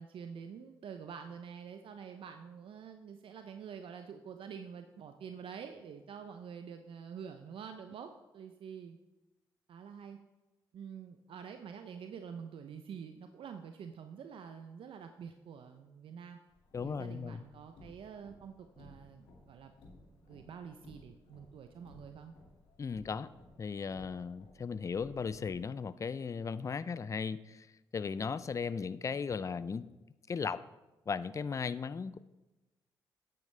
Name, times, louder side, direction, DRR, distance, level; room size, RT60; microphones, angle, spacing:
voice 1, 0.0-9.0 9.7-10.2 10.7-16.4 16.8-19.7 20.3-22.3, right 7 dB, 70° right, 7 dB, 0.5 m, -47 dB
Car, 16.5-25.5, left 2 dB, 85° left, 2.1 m, -59 dB
voice 2, 16.7-17.4 22.8-23.3 23.6-27.7 27.9-29.9 30.3-30.6 31.1-32.2, left 5 dB, 35° left, 16 dB, 0.4 m, -36 dB
9.5 x 8.6 x 3.3 m, 1.1 s
supercardioid pair, 60°, 9 cm